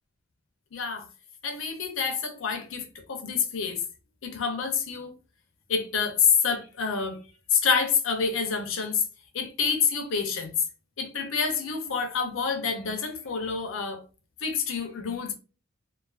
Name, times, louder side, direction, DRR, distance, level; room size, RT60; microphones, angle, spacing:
voice 1, 0.7-1.1 1.4-3.8 4.2-5.1 5.7-7.2 7.5-9.0 9.3-10.5 11.0-14.0 14.4-15.3, left 6 dB, 75° left, 0.6 m, -27 dB
2.3 x 2.2 x 2.3 m
head